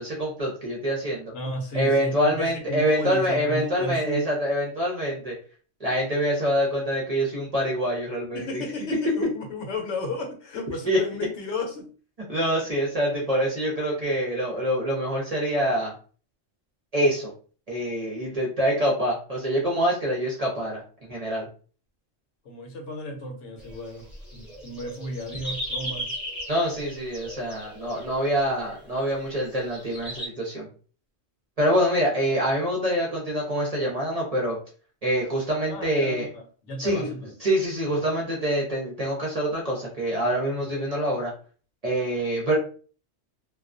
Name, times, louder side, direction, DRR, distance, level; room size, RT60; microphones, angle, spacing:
voice 1, 0.0-1.3 1.7-5.4 5.8-8.6 10.9-11.0 12.3-15.9 16.9-17.3 17.7-21.5 26.5-30.7 31.6-34.6 35.0-36.3 36.8-37.1 37.4-41.3 41.8-42.6, equal, 40° right, -3 dB, 0.6 m, -25 dB
voice 2, 1.3-4.3 8.3-11.9 22.4-24.0 24.3-26.1 35.7-37.3 37.9-38.0, left 1 dB, 70° left, 3 dB, 1.0 m, -33 dB
sound 1, 23.6-30.3, equal, ahead, 0.7 m, -37 dB
2.3 x 2.2 x 2.5 m, 0.40 s
omnidirectional pair, 1.3 m